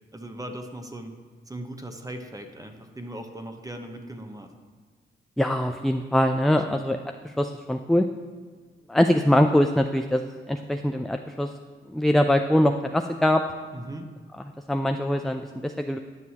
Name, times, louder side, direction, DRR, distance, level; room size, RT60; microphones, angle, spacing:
voice 1, 0.1-1.1 1.5-4.5 6.7-6.8 13.7-14.1, right 1 dB, 15° right, 6 dB, 0.9 m, -38 dB
voice 2, 5.4-7.0 7.2-8.1 8.9-11.5 11.9-13.4 14.7-16.0, left 1 dB, ahead, 6 dB, 0.3 m, -23 dB
10.5 x 6.1 x 2.9 m, 1.5 s
cardioid pair, 55°, 21 cm